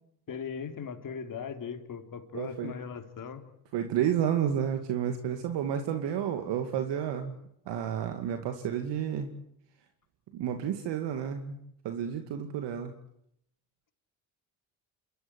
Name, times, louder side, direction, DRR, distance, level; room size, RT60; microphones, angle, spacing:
voice 1, 0.3-3.4, left 6 dB, 45° left, 6 dB, 3.6 m, -39 dB
voice 2, 2.3-2.7 3.7-7.4 7.7-9.3 10.3-11.6 11.8-12.9, right 9 dB, 65° right, 6 dB, 2.5 m, -31 dB
28.5 x 14.0 x 9.8 m, 0.75 s
hypercardioid pair, 65°, 46 cm